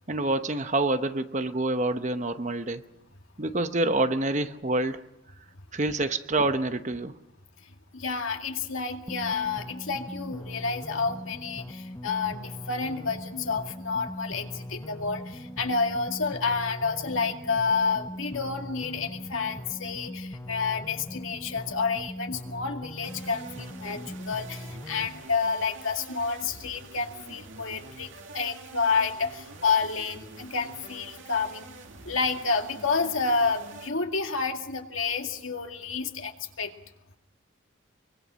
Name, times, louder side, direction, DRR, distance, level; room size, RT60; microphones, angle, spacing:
voice 1, 0.1-2.8 3.4-5.0 5.7-7.2, right 2 dB, 35° right, 9 dB, 0.9 m, -27 dB
voice 2, 7.9-31.8 32.0-36.7, left 4 dB, 85° left, 3 dB, 2.2 m, -29 dB
sound 1, 9.1-25.1, left 1 dB, 15° left, 0.8 m, -40 dB
sound 2, 23.0-33.9, right 3 dB, 75° right, 2.2 m, -47 dB
24.0 x 22.5 x 6.3 m, 0.88 s
head